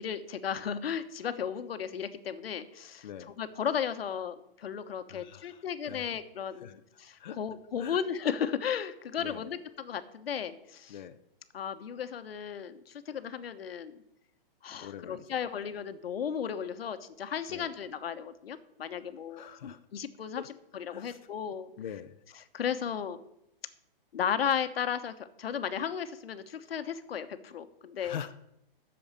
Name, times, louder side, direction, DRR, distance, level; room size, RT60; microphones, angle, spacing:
voice 1, 0.0-3.1 3.4-10.9 11.5-14.0 14.6-21.7 22.5-23.2 24.1-28.2, left 8 dB, 90° left, 10 dB, 1.2 m, -35 dB
voice 2, 5.1-6.1 6.5-6.8 7.2-7.4 7.8-8.0 9.2-9.5 10.9-11.2 14.8-15.4 17.5-17.7 19.0-19.8 20.4-20.5 20.9-21.2 21.8-22.2 28.0-28.3, left 9 dB, 50° left, 7 dB, 0.7 m, -44 dB
8.5 x 7.1 x 8.7 m, 0.79 s
hypercardioid pair, 175°, 29 cm